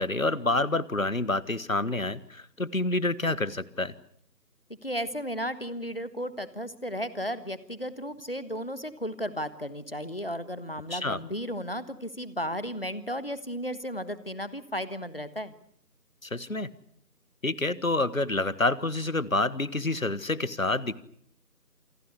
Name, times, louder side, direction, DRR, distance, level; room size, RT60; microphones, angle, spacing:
voice 1, 0.0-3.9 10.9-11.2 16.2-16.7 17.4-21.0, left 2 dB, 55° left, 18 dB, 1.5 m, -28 dB
voice 2, 4.8-15.5, equal, 35° left, 15 dB, 1.4 m, -34 dB
27.5 x 19.5 x 8.1 m, 0.66 s
figure-of-eight pair, 175°, 48 cm